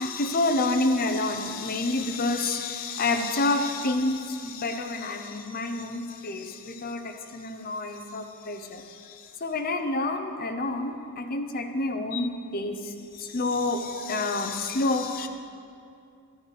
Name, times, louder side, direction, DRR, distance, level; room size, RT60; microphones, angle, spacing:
voice 1, 0.0-15.3, left 2 dB, 40° left, 6 dB, 0.7 m, -28 dB
12.5 x 9.3 x 3.3 m, 2.4 s
head